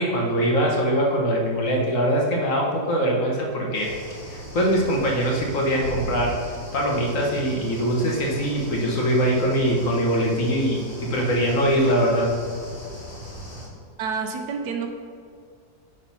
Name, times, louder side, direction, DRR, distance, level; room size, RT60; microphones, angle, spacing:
voice 1, 0.0-3.9 4.3-6.4 6.7-12.3, equal, 55° left, -1 dB, 1.5 m, -22 dB
sound 1, 3.7-13.7, equal, 75° left, 2.3 m, -38 dB
voice 2, 14.0-14.9, right 5 dB, 75° right, 5 dB, 1.2 m, -28 dB
7.8 x 4.1 x 5.5 m, 2.2 s
omnidirectional pair, 1.8 m